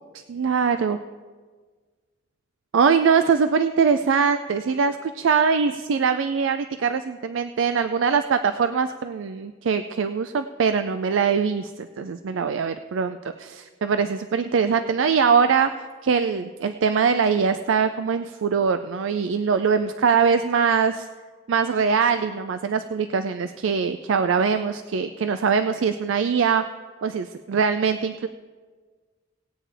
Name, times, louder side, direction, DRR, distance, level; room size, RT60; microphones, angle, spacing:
voice 1, 0.1-1.0 2.7-15.7 16.0-21.1 21.5-26.6 27.0-28.3, right 6 dB, 85° right, 9 dB, 0.4 m, -22 dB
19.0 x 8.7 x 3.3 m, 1.5 s
head